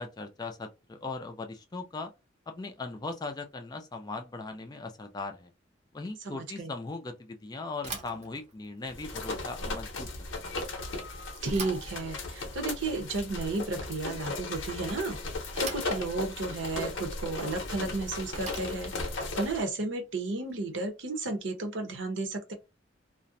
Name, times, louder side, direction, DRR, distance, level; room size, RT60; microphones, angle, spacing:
voice 1, 0.0-2.1 2.5-5.5 5.9-10.1 10.4-10.6, left 3 dB, 20° left, 0.3 m, -39 dB
voice 2, 6.2-6.7 11.4-15.2 15.6-22.5, right 3 dB, 75° right, 0.7 m, -33 dB
Bicycle / Thump thud, 7.8-20.9, right 4 dB, 35° right, 0.6 m, -47 dB
sound 1, 8.9-19.7, left 2 dB, 90° left, 0.7 m, -36 dB
2.5 x 2.0 x 2.6 m
head